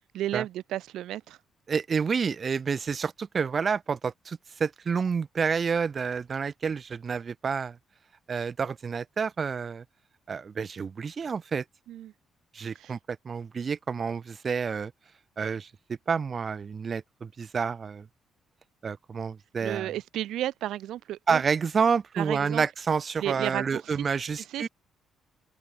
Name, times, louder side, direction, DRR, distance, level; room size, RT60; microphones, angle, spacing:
voice 1, 0.1-1.4 11.9-12.1 12.8-13.0 19.6-21.4 22.1-22.6 23.2-24.2 24.5-24.7, right 13 dB, 80° right, 7.5 m, -33 dB
voice 2, 1.7-7.8 8.3-9.8 10.3-11.6 12.5-14.9 15.4-15.7 16.1-18.1 18.8-19.9 21.3-24.7, right 6 dB, 40° right, 3.6 m, -29 dB
open air
cardioid pair, 90°, 0 cm